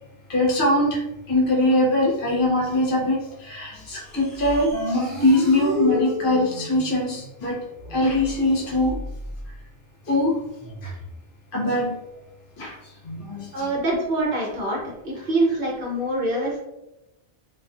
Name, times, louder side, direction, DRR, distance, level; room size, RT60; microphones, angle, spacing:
voice 1, 0.3-1.0 1.3-7.6 7.9-8.9 10.1-10.4 10.8-10.9 11.5-11.9 12.6-13.7, left 1 dB, 55° left, -5 dB, 0.9 m, -22 dB
sound 1, 3.7-9.6 10.5-11.2, equal, 25° left, 1.2 m, -39 dB
sound 2, 4.7-6.7, left 2 dB, 35° right, 0.9 m, -27 dB
voice 2, 13.5-16.6, right 2 dB, 60° right, -4 dB, 0.9 m, -25 dB
2.4 x 2.3 x 2.4 m, 0.93 s
omnidirectional pair, 1.1 m